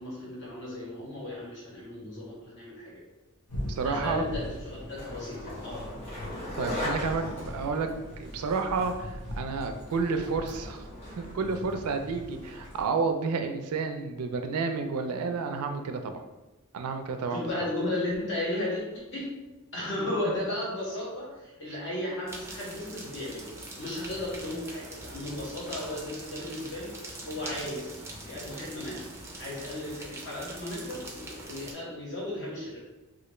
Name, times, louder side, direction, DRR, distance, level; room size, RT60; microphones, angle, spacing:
voice 1, 0.0-3.0 3.8-5.9 17.3-18.8 19.1-19.4 19.7-29.1 29.4-32.8, left 1 dB, 55° left, -6 dB, 1.2 m, -35 dB
sound 1, 3.5-12.8, left 1 dB, 90° left, 0.9 m, -41 dB
voice 2, 3.7-4.2 6.5-10.9 11.2-16.2 16.7-17.7 21.7-21.8, right 4 dB, 75° right, 6 dB, 0.4 m, -31 dB
Skateboard, 4.5-12.9, left 1 dB, 30° left, 1.2 m, -40 dB
sound 2, 22.3-31.7, right 2 dB, 10° right, 0.4 m, -43 dB
3.2 x 2.5 x 3.0 m, 1.1 s
head